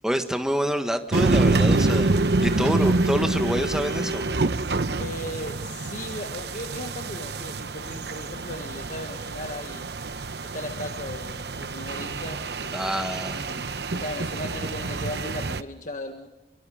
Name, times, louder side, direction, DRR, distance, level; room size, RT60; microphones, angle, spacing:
voice 1, 0.0-4.3 12.7-13.4, equal, 5° right, 6 dB, 1.6 m, -27 dB
sound 1, 1.1-15.6, right 2 dB, 70° right, 0.9 m, -27 dB
voice 2, 2.2-3.0 5.0-9.9 10.4-13.1 13.3-16.3, left 1 dB, 45° left, 5 dB, 1.6 m, -37 dB
25.5 x 24.0 x 5.1 m, 0.96 s
head